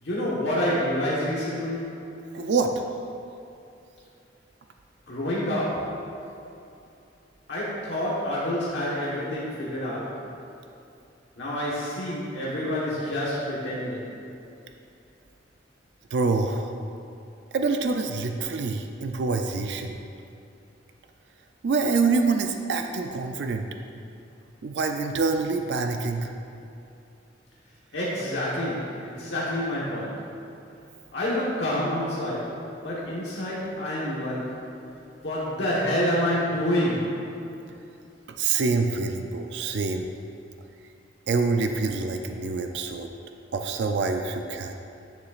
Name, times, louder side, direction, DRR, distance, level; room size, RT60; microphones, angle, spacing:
voice 1, 0.0-2.0 5.1-6.0 7.5-10.2 11.4-14.1 27.9-30.2 31.1-32.6 32.8-34.6 35.2-37.2, left 1 dB, 75° left, -7 dB, 1.2 m, -28 dB
voice 2, 2.3-2.9 16.1-16.7 17.5-20.0 21.6-23.7 24.6-26.3 38.3-40.1 41.3-43.1 43.5-44.7, right 4 dB, 65° right, 5 dB, 0.4 m, -26 dB
9.5 x 6.9 x 2.4 m, 2.7 s
head